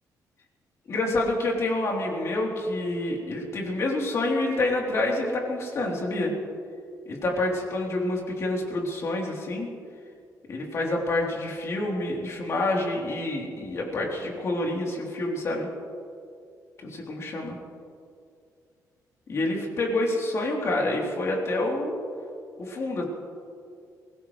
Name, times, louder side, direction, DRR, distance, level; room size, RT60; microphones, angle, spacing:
voice 1, 0.9-6.3 7.1-9.7 10.5-15.7 16.8-17.6 19.3-22.0 22.6-23.0, left 2 dB, 45° left, -2 dB, 3.3 m, -27 dB
23.5 x 17.0 x 3.2 m, 2.4 s
cardioid pair, 145°, 7 cm